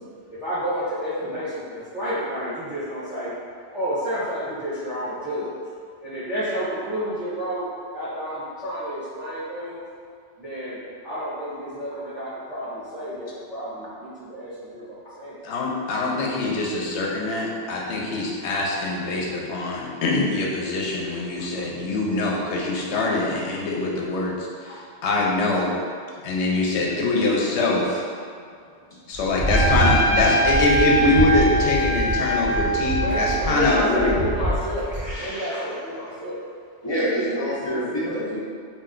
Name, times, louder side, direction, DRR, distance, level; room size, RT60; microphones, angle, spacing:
voice 1, 0.4-3.3 3.7-5.5 6.0-7.7 7.9-9.8 10.4-15.4 32.9-34.9 35.2-36.4, equal, ahead, -12 dB, 0.8 m, -30 dB
voice 2, 15.4-24.4 25.0-25.7 26.2-28.0 29.1-34.2, left 2 dB, 75° left, -3 dB, 0.8 m, -23 dB
sound 1, 29.1-35.1, right 1 dB, 50° right, 0.5 m, -26 dB
Trumpet, 29.5-34.2, equal, 70° right, 0.9 m, -24 dB
voice 3, 34.9-35.6 36.8-38.4, equal, 35° left, -8 dB, 0.4 m, -27 dB
2.7 x 2.1 x 3.6 m, 2.2 s
omnidirectional pair, 1.2 m